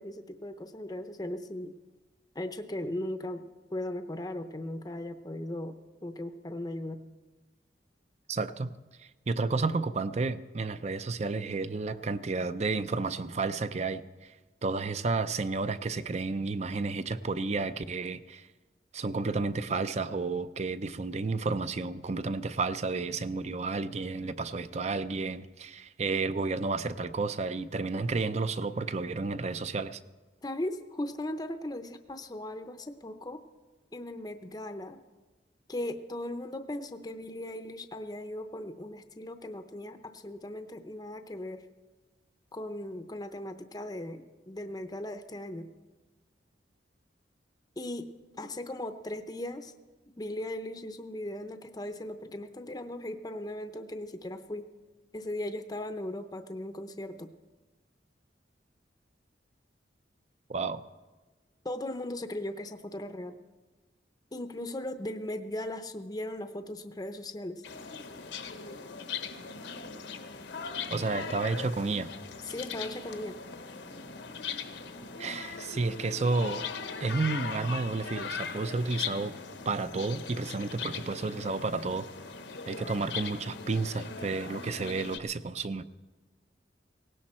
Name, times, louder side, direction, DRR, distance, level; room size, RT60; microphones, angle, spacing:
voice 1, 0.0-1.7 2.3-3.4 3.7-5.8 6.0-7.0 30.4-33.4 33.9-35.0 35.7-41.6 42.5-45.7 47.8-48.1 48.3-49.7 50.2-54.7 55.1-57.3 61.6-63.4 64.3-67.6 72.4-73.4, left 1 dB, 20° left, 8 dB, 0.6 m, -38 dB
voice 2, 8.3-8.7 9.0-14.3 14.6-18.5 18.9-30.0 60.5-60.8 70.9-72.1 75.2-76.6 77.0-79.4 79.7-82.1 82.7-85.8, right 3 dB, 40° right, 13 dB, 0.5 m, -31 dB
sound 1, 67.6-85.2, left 5 dB, 75° left, 1.1 m, -40 dB
18.0 x 17.0 x 4.3 m, 1.2 s
head